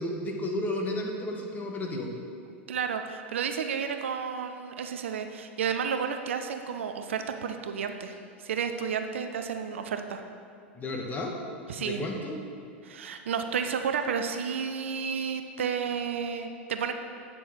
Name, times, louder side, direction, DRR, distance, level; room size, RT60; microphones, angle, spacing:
voice 1, 0.0-2.1 10.8-11.3 11.8-12.4, left 1 dB, 25° left, 1 dB, 1.4 m, -32 dB
voice 2, 2.7-8.1 8.4-10.2 11.7-12.0 12.8-16.9, right 6 dB, 75° right, 7 dB, 0.6 m, -31 dB
8.9 x 6.2 x 4.4 m, 2.5 s
hypercardioid pair, 90°, 7 cm